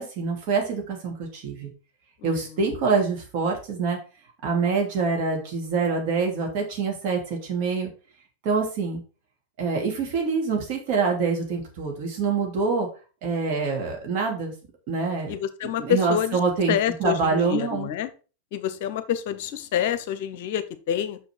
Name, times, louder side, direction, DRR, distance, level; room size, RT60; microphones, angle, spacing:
voice 1, 0.0-1.7 2.2-4.0 4.4-7.9 8.4-9.0 9.6-12.9 13.2-14.5 14.9-15.4 15.6-16.7 17.0-17.9, right 4 dB, 45° right, 0 dB, 2.8 m, -25 dB
voice 2, 15.3-16.4 16.7-18.1 18.5-21.2, left 10 dB, 50° left, 12 dB, 0.8 m, -27 dB
6.2 x 6.0 x 4.6 m, 0.35 s
figure-of-eight pair, 90°, 0 cm